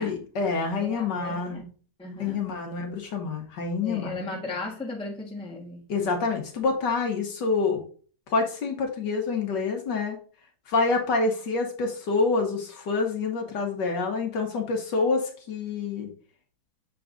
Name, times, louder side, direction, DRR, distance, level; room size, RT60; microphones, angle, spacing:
voice 1, 0.0-1.5 2.2-4.1 5.9-7.8 8.3-10.2 10.7-16.1, left 4 dB, 60° left, 1.6 m, -27 dB
voice 2, 0.8-1.6 2.0-2.9 3.8-5.8, left 2 dB, 5° left, 1.0 m, -36 dB
7.0 x 3.8 x 3.8 m
omnidirectional pair, 2.3 m